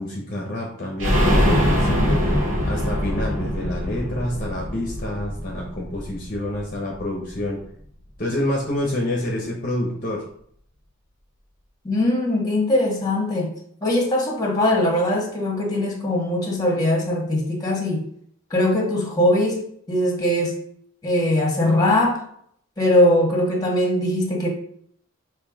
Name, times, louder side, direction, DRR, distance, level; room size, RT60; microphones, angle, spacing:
voice 1, 0.0-2.2 2.6-7.6 8.2-10.2, left 1 dB, 40° left, -1 dB, 1.1 m, -27 dB
sound 1, 1.0-6.6 6.9-7.0 7.3-7.4, equal, 65° right, 2.2 m, -22 dB
voice 2, 11.8-13.5 13.8-18.1 18.5-20.6 21.0-22.2 22.8-24.5, left 1 dB, 20° left, 0 dB, 1.7 m, -21 dB
7.0 x 3.3 x 5.1 m, 0.64 s
head